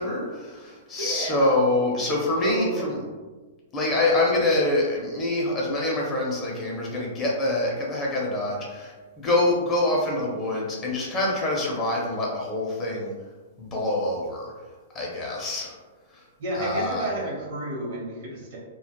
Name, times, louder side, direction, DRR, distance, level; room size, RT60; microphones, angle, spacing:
voice 1, 0.0-3.0 3.7-13.1 13.6-14.5 14.9-15.8 16.1-16.2 16.5-17.1, left 2 dB, 20° left, -3 dB, 0.6 m, -25 dB
voice 2, 1.0-1.6 2.4-3.1 16.4-18.6, right 1 dB, 60° right, -3 dB, 0.9 m, -31 dB
2.2 x 2.0 x 2.9 m, 1.3 s
hypercardioid pair, 145°, 0 cm